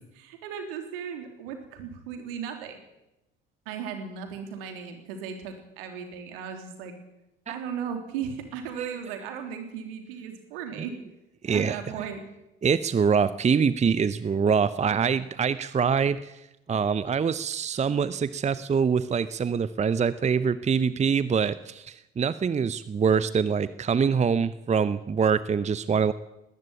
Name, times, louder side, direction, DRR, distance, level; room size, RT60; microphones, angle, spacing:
voice 1, 0.2-2.8 3.6-6.9 7.5-11.0 11.5-12.2, right 7 dB, 65° right, 6 dB, 3.4 m, -36 dB
voice 2, 11.4-11.8 12.6-16.4 16.7-26.1, right 6 dB, 20° right, 16 dB, 0.8 m, -24 dB
20.0 x 14.5 x 9.3 m, 0.95 s
figure-of-eight pair, 55°, 30 cm